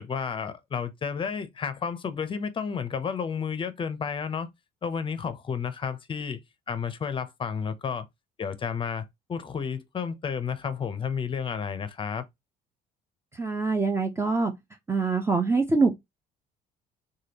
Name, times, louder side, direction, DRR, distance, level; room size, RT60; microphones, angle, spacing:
voice 1, 0.0-4.5 4.8-6.4 6.7-8.1 8.4-12.3, left 6 dB, 30° left, 0.6 m, -31 dB
voice 2, 13.3-14.5 14.9-16.0, right 4 dB, 15° right, 0.5 m, -24 dB
3.4 x 2.2 x 2.8 m
cardioid pair, 110°, 17 cm